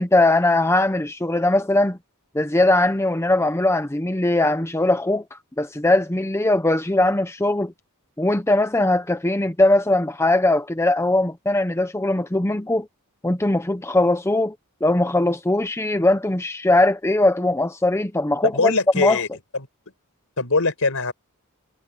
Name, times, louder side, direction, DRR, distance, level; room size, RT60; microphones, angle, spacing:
voice 1, 0.0-2.0 2.3-7.7 8.2-12.9 13.2-14.5 14.8-19.2, left 2 dB, 10° left, 0.8 m, -20 dB
voice 2, 18.4-19.3 19.5-19.7 20.4-21.1, left 3 dB, 65° left, 4.9 m, -22 dB
head